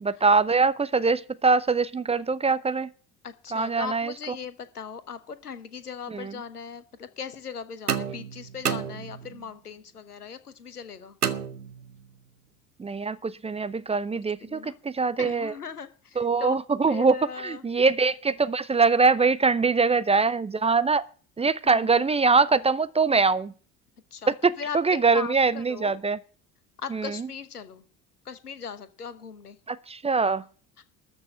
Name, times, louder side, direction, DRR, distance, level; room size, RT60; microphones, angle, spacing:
voice 1, 0.0-2.9 3.5-4.1 6.1-6.3 12.8-15.5 16.2-17.2 17.4-21.1 21.4-23.5 24.3-26.2 26.9-27.3 29.7-30.4, right 4 dB, 15° right, 0.5 m, -23 dB
voice 2, 3.2-11.2 14.2-14.8 15.2-16.6 16.9-17.6 21.6-22.0 24.1-25.9 26.8-27.8 28.2-29.6 30.8-30.9, left 6 dB, 85° left, 1.1 m, -39 dB
sound 1, 7.9-9.5 11.2-12.2, right 7 dB, 90° right, 0.8 m, -31 dB
13.5 x 6.2 x 7.5 m
figure-of-eight pair, 60°, 44 cm